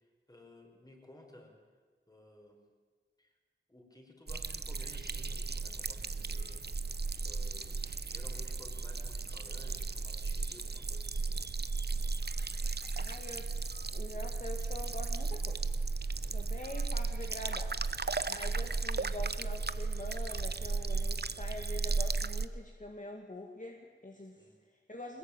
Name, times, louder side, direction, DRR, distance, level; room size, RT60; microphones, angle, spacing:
voice 1, 0.3-1.5 2.1-2.6 3.2-3.3 3.7-6.7 7.2-11.5 16.2-16.6 24.4-24.6, left 1 dB, 20° left, 2 dB, 5.7 m, -56 dB
sound 1, 4.3-22.5, right 4 dB, 55° right, 0.9 m, -35 dB
voice 2, 13.0-15.6 16.2-25.2, left 1 dB, 40° left, 2 dB, 2.2 m, -45 dB
22.5 x 21.0 x 9.1 m, 1.5 s
wide cardioid pair, 65°, 20 cm